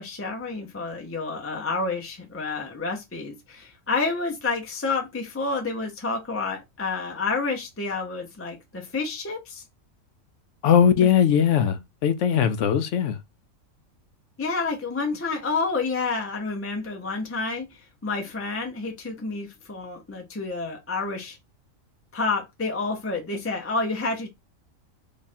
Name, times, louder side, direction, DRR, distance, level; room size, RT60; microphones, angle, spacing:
voice 1, 0.0-9.6 14.4-21.4 22.1-24.3, left 3 dB, 20° left, 0.4 m, -29 dB
voice 2, 10.6-13.2, left 8 dB, 70° left, 0.9 m, -20 dB
3.1 x 2.4 x 4.2 m
omnidirectional pair, 1.4 m